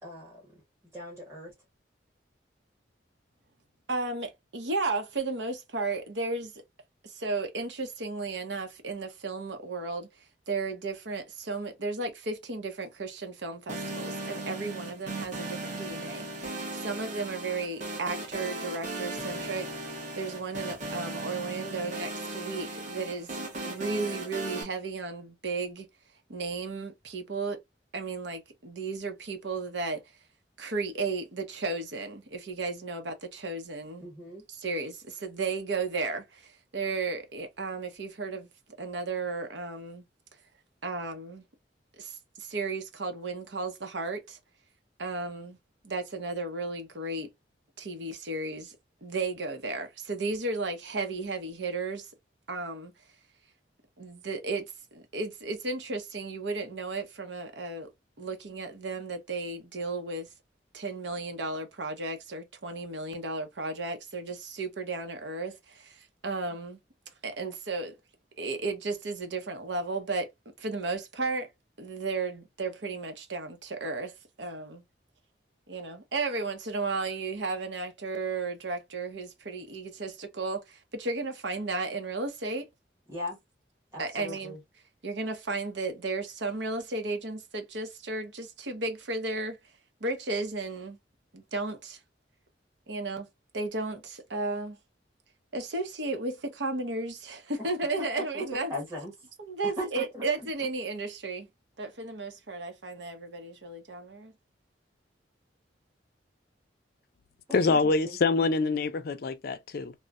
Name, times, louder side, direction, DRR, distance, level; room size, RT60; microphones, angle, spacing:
voice 1, 0.0-0.5 0.9-1.5 34.0-34.4 83.1-83.4 83.9-84.6 97.6-97.7 98.3-98.4 98.7-99.1 99.6-100.5 107.6-108.2, left 1 dB, 15° right, 1.1 m, -39 dB
voice 2, 3.9-6.5 7.0-10.1 10.5-19.7 20.1-25.9 26.3-27.6 27.9-30.0 30.6-34.1 34.5-38.5 38.8-40.0 40.8-41.4 42.0-44.4 45.0-45.6 45.8-47.3 47.8-48.8 49.0-52.1 52.5-52.9 54.0-57.9 58.2-60.3 60.7-66.8 67.2-68.0 68.4-70.3 70.6-71.5 71.8-74.8 75.7-82.7 84.0-84.6 85.0-89.6 90.0-91.0 91.3-92.0 92.9-93.3 93.5-94.8 95.5-98.7 99.4-101.5 101.8-104.3, right 3 dB, 75° right, 0.8 m, -34 dB
sound 1, 13.7-24.6, right 2 dB, 45° right, 1.0 m, -37 dB
voice 3, 107.5-109.9, left 3 dB, 55° left, 0.4 m, -25 dB
3.1 x 2.1 x 2.3 m
head